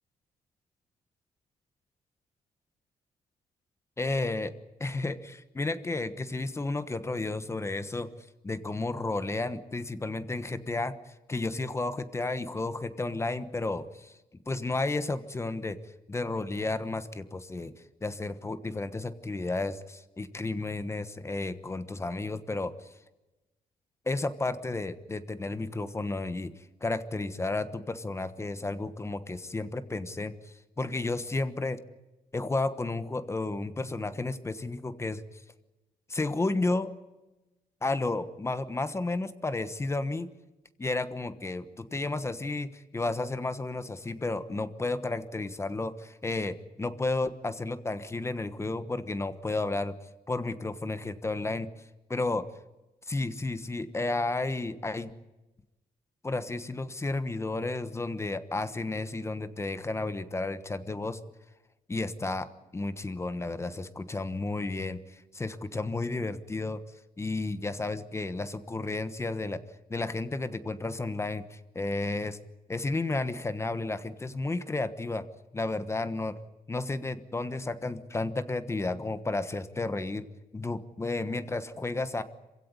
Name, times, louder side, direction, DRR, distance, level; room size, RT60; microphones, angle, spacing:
voice 1, 4.0-4.5 4.8-8.1 8.4-10.9 11.3-14.1 14.5-15.8 16.1-17.7 18.0-22.9 24.1-26.5 26.8-30.3 30.8-31.8 32.3-35.2 36.1-36.9 37.8-40.3 40.8-49.9 50.3-51.7 52.1-52.5 53.1-55.1 56.2-61.2 61.9-66.8 67.2-69.6 69.9-72.4 72.7-75.2 75.5-76.4 76.7-80.3 80.5-82.2, left 2 dB, 15° left, 12 dB, 1.3 m, -32 dB
27.0 x 16.5 x 9.8 m, 1.0 s
cardioid pair, 155°, 16 cm